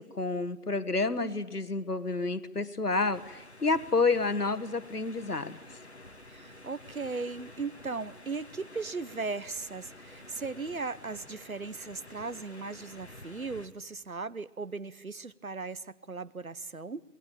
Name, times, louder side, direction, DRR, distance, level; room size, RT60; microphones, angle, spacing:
voice 1, 0.0-5.6, left 3 dB, 70° left, 12 dB, 1.6 m, -29 dB
sound 1, 3.1-13.7, left 2 dB, 45° left, 1.8 m, -50 dB
voice 2, 6.3-17.0, right 4 dB, 60° right, 16 dB, 1.0 m, -37 dB
27.0 x 20.5 x 8.7 m, 1.1 s
figure-of-eight pair, 170°, 48 cm